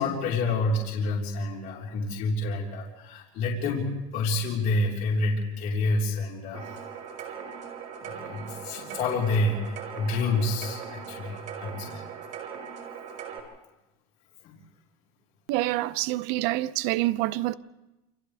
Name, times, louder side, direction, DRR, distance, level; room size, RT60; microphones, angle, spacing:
voice 1, 0.0-6.7 8.0-12.0 14.4-14.5, left 2 dB, 50° left, 4.5 m, -28 dB
sound 1, 6.5-13.4, right 7 dB, 45° right, 5.2 m, -40 dB
voice 2, 15.5-17.6, right 17 dB, 60° right, 0.7 m, -27 dB
29.5 x 28.0 x 3.5 m
cardioid pair, 150°, 18 cm